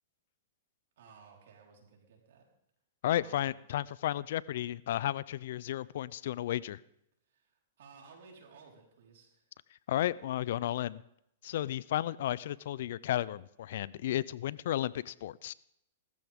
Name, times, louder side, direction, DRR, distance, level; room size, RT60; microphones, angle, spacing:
voice 1, 1.0-2.5 3.1-3.6 7.3-9.4, right 5 dB, 70° right, 0 dB, 4.3 m, -57 dB
voice 2, 3.0-6.8 9.9-11.0 11.4-15.5, left 12 dB, 65° left, 21 dB, 0.4 m, -33 dB
19.0 x 14.0 x 3.6 m, 0.77 s
hypercardioid pair, 135°, 0 cm